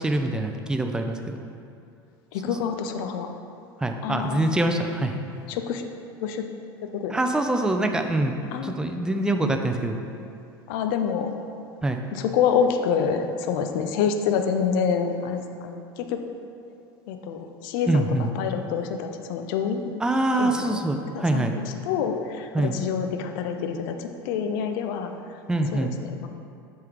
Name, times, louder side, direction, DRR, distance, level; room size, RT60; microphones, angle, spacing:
voice 1, 0.0-1.4 3.8-5.2 7.1-10.0 11.8-12.0 17.9-18.3 20.0-21.5 22.5-22.7 25.5-25.9, right 2 dB, 5° right, 5 dB, 0.5 m, -24 dB
voice 2, 2.3-3.3 4.0-4.6 5.5-5.8 6.2-6.5 6.9-7.2 8.5-8.8 10.7-11.3 12.1-16.2 17.1-19.9 20.4-20.8 21.1-25.1 25.7-26.3, left 7 dB, 60° left, 6 dB, 0.6 m, -27 dB
7.5 x 3.7 x 4.8 m, 2.6 s
hypercardioid pair, 80°, 13 cm